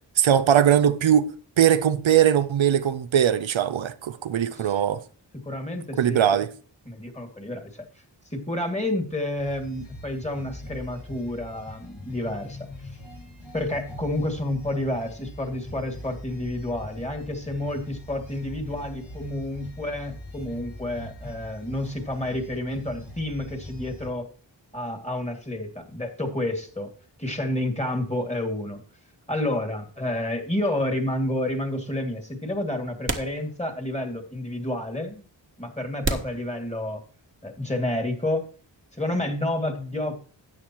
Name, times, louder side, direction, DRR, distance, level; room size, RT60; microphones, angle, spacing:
voice 1, 0.2-1.3 1.6-5.0 6.0-6.5, right 9 dB, 85° right, 0.7 m, -20 dB
voice 2, 4.5-4.8 5.3-6.2 6.9-7.8 8.3-12.7 13.5-24.3 24.7-26.9 27.2-28.8 29.3-35.2 35.6-37.0 37.4-38.5 38.9-40.2, left 1 dB, 15° left, 2.3 m, -30 dB
sound 1, 9.3-24.1, left 1 dB, 90° left, 4.8 m, -42 dB
sound 2, 33.0-34.0 34.3-34.4 35.1-35.2 36.0-37.3, right 2 dB, 25° right, 1.3 m, -32 dB
13.0 x 8.5 x 3.0 m
cardioid pair, 45°, 45 cm